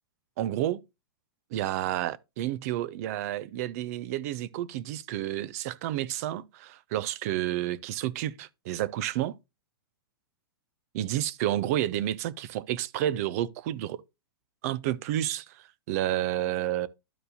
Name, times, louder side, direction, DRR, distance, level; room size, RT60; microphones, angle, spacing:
voice 1, 0.4-0.8 1.5-9.4 10.9-14.0 14.6-16.9, right 13 dB, 40° right, 0.5 m, -30 dB
12.5 x 4.6 x 2.7 m
hypercardioid pair, 155°, 12 cm